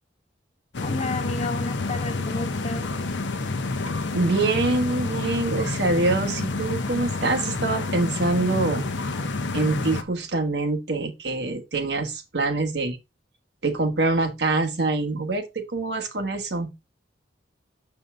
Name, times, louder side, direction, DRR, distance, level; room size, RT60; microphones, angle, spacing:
sound 1, 0.7-10.0, left 3 dB, 75° left, 0.8 m, -28 dB
voice 1, 0.8-3.0, left 2 dB, 35° left, 0.6 m, -32 dB
voice 2, 4.1-8.8 9.5-13.0 13.6-16.7, right 2 dB, 65° right, 1.3 m, -25 dB
6.9 x 5.5 x 3.7 m
head